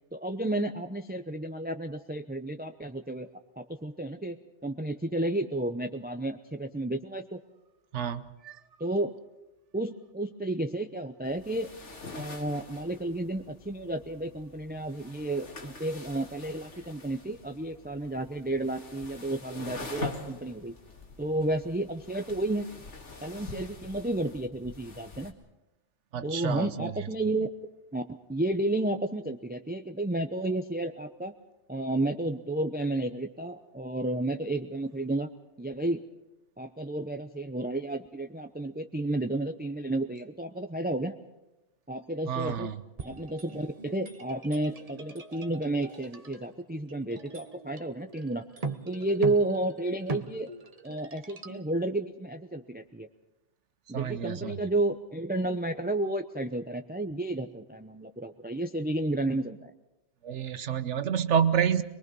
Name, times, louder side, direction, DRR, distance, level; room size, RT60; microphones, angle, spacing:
voice 1, 0.1-3.3 3.6-7.4 8.8-9.2 9.7-11.7 12.1-20.7 21.2-22.7 23.2-25.4 26.2-27.5 27.9-28.0 28.3-31.3 31.7-35.3 35.6-36.0 36.6-41.2 41.9-42.7 43.0-48.4 48.8-50.5 50.8-53.1 53.9-59.7, right 2 dB, 10° right, 7 dB, 0.6 m, -32 dB
voice 2, 7.9-8.6 26.1-27.1 42.3-42.8 53.9-54.6 60.2-61.8, right 8 dB, 75° right, 12 dB, 1.2 m, -29 dB
sound 1, 11.2-25.3, left 4 dB, 75° left, 2.4 m, -45 dB
sound 2, 43.0-51.7, right 3 dB, 35° right, 1.0 m, -41 dB
23.5 x 22.0 x 5.4 m, 0.99 s
omnidirectional pair, 1.2 m